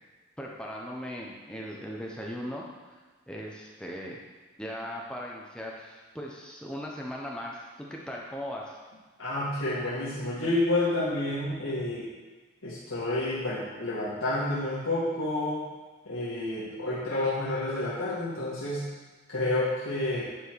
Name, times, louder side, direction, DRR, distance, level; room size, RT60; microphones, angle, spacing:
voice 1, 0.4-3.0 3.3-4.2 4.6-8.8, equal, 5° left, -3 dB, 0.9 m, -38 dB
voice 2, 9.2-12.1 12.6-15.6 16.1-18.8 19.3-20.3, left 2 dB, 85° left, -9 dB, 1.8 m, -29 dB
9.8 x 4.6 x 4.7 m, 1.4 s
head